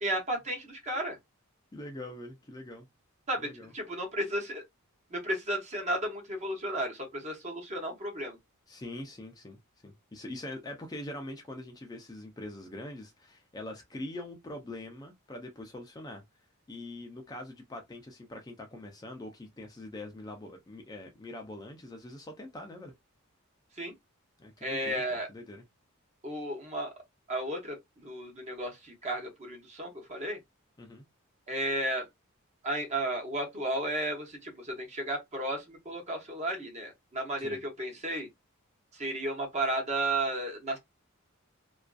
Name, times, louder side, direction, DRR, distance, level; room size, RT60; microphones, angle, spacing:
voice 1, 0.0-1.2 3.3-4.6 5.1-8.4 23.7-23.9 24.6-25.3 26.2-26.9 27.3-30.4 31.5-32.1 32.6-38.3 38.9-40.8, right 1 dB, 30° right, 0.7 m, -33 dB
voice 2, 1.7-2.9 3.4-3.7 8.7-16.2 16.7-22.9 24.4-25.0 25.3-25.6 30.8-31.0 37.4-37.6, left 1 dB, 15° left, 0.4 m, -43 dB
2.5 x 2.3 x 2.3 m
head